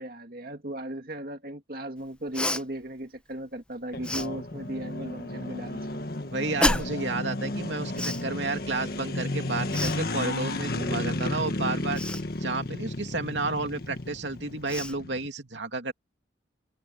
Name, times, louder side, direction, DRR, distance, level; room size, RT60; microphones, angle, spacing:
voice 1, 0.0-5.9, right 1 dB, 55° right, 2.3 m, -36 dB
Cough, 2.3-2.6 4.0-4.3 6.6-7.0 7.9-8.2 9.7-10.0 11.9-12.2 14.1-14.2 14.6-15.0, left 1 dB, 5° left, 0.8 m, -28 dB
sound 1, 3.9-15.3, left 2 dB, 55° left, 1.7 m, -33 dB
voice 2, 6.3-12.0 12.4-15.9, right 3 dB, 85° right, 2.8 m, -31 dB
head